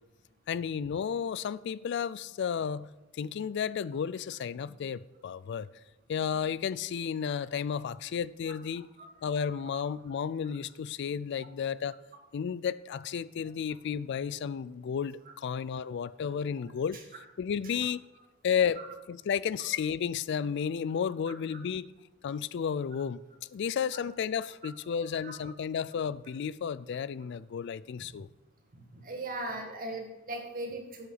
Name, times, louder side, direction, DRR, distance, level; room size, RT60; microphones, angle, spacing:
voice 1, 0.5-5.7 6.1-8.9 9.2-12.0 12.3-17.0 17.4-18.0 18.4-21.9 22.2-23.2 23.5-28.3, left 7 dB, 60° left, 0.3 m, -32 dB
voice 2, 9.0-9.5 18.8-18.9 24.9-25.0 25.2-25.3 28.7-31.1, right 2 dB, 45° right, 1.9 m, -39 dB
12.5 x 8.5 x 4.0 m
head